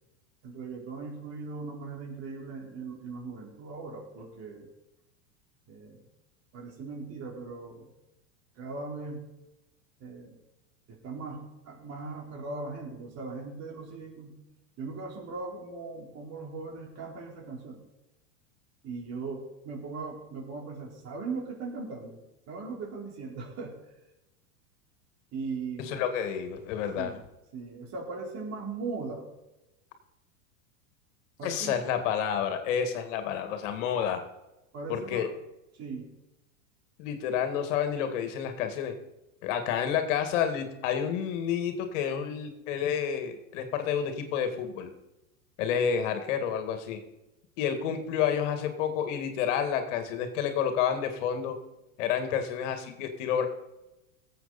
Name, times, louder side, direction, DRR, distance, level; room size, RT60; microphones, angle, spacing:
voice 1, 0.4-4.7 5.7-6.1 6.5-7.9 8.6-9.2 10.0-10.4 10.9-14.3 14.8-17.8 18.8-22.2 22.5-23.7 25.3-26.0 27.0-27.2 27.5-29.3 31.4-31.8 34.7-35.3 35.7-36.1, right 4 dB, 40° right, -1 dB, 4.0 m, -39 dB
voice 2, 25.8-27.1 31.4-34.3 34.9-35.3 37.0-38.9 39.4-44.9 45.6-47.0 47.6-51.6 52.0-53.5, left 8 dB, 65° left, 7 dB, 2.1 m, -29 dB
18.5 x 8.0 x 4.2 m, 0.95 s
hypercardioid pair, 115°, 40 cm